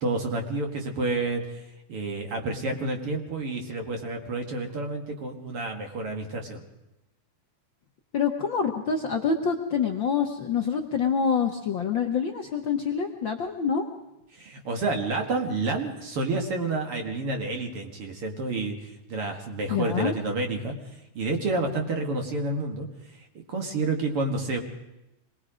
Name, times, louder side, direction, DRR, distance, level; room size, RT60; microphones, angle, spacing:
voice 1, 0.0-6.6 14.3-20.7 21.1-22.9 23.1-24.6, right 2 dB, 50° right, 3 dB, 2.7 m, -29 dB
voice 2, 8.1-13.8 19.7-20.1, left 6 dB, 55° left, 3 dB, 1.4 m, -26 dB
26.0 x 20.0 x 5.1 m, 0.92 s
omnidirectional pair, 3.4 m